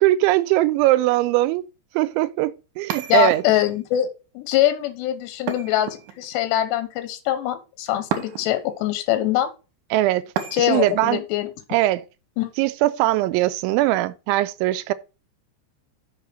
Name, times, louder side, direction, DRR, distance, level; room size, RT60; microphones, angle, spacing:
voice 1, 0.0-1.6 2.0-3.4 9.9-10.3 10.6-11.2 11.7-12.0 12.6-14.9, right 16 dB, 90° right, 3.0 m, -20 dB
sound 1, 2.9-3.8 5.5-6.4 8.1-8.7 10.4-11.0, right 9 dB, 70° right, 2.1 m, -31 dB
voice 2, 3.1-9.5 10.5-11.5 12.4-12.5, left 13 dB, 75° left, 3.1 m, -23 dB
6.6 x 5.6 x 6.3 m
omnidirectional pair, 5.3 m